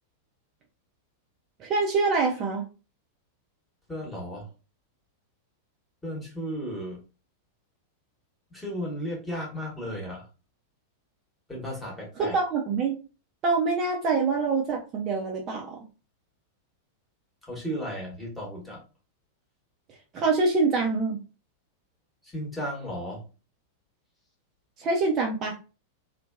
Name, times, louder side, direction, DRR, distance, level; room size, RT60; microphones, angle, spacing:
voice 1, 1.6-2.6 12.2-12.9 13.4-15.8 20.1-21.2 24.8-25.5, right 4 dB, 30° right, 0.5 m, -25 dB
voice 2, 3.9-4.5 6.0-7.0 8.5-10.3 11.5-12.4 17.4-18.8 22.2-23.3, equal, 10° left, 1.2 m, -34 dB
2.7 x 2.1 x 2.2 m
figure-of-eight pair, 90°, 0 cm